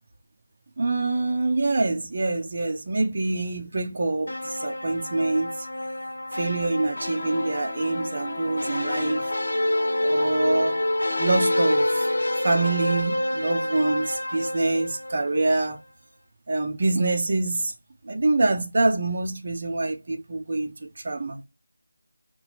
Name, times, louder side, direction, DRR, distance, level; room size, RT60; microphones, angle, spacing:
voice 1, 0.8-5.5 6.3-9.2 10.0-10.7 11.2-12.1 12.4-15.8 16.5-17.7 18.0-21.4, right 2 dB, 40° right, 0.7 m, -25 dB
sound 1, 4.3-15.5, left 1 dB, 65° left, 0.9 m, -27 dB
2.9 x 2.3 x 4.0 m
figure-of-eight pair, 170°, 0 cm